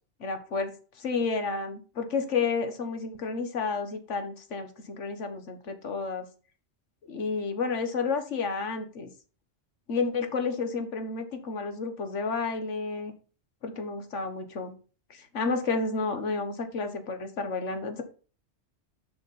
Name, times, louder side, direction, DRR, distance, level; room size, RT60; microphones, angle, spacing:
voice 1, 0.2-0.7 1.0-6.3 7.1-9.1 9.9-13.1 13.6-14.7 15.1-18.0, left 4 dB, 85° left, 7 dB, 1.6 m, -31 dB
6.6 x 6.0 x 4.2 m, 0.37 s
omnidirectional pair, 1.2 m